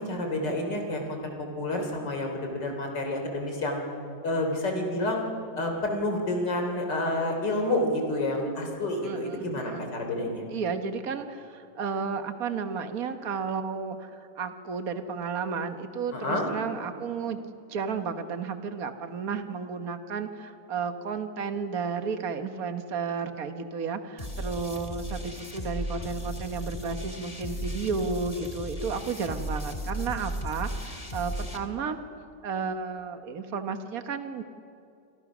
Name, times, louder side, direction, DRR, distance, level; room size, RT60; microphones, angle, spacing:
voice 1, 0.0-3.8 4.2-5.2 5.6-10.4 16.1-16.5, left 1 dB, 75° left, 3 dB, 4.1 m, -29 dB
voice 2, 9.0-9.9 10.5-17.4 17.7-32.0 32.4-34.4, right 5 dB, 55° right, 7 dB, 1.7 m, -33 dB
sound 1, 24.2-31.6, equal, 20° left, 2.1 m, -35 dB
28.5 x 26.0 x 6.2 m, 2.5 s
omnidirectional pair, 1.9 m